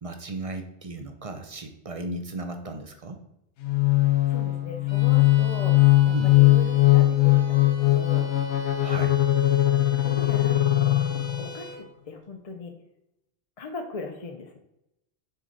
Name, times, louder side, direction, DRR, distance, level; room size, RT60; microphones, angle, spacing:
voice 1, 0.0-3.2 6.1-6.3 8.8-9.2, right 2 dB, 40° right, 6 dB, 0.5 m, -35 dB
sound 1, 3.6-11.6, left 15 dB, 75° left, 1.0 m, -20 dB
voice 2, 4.3-8.3 10.0-11.0 11.4-12.7 13.6-14.6, left 4 dB, 40° left, 4 dB, 0.6 m, -39 dB
Bowed string instrument, 4.9-11.9, right 1 dB, 25° left, 1.1 m, -44 dB
6.4 x 3.8 x 4.0 m, 0.85 s
omnidirectional pair, 1.2 m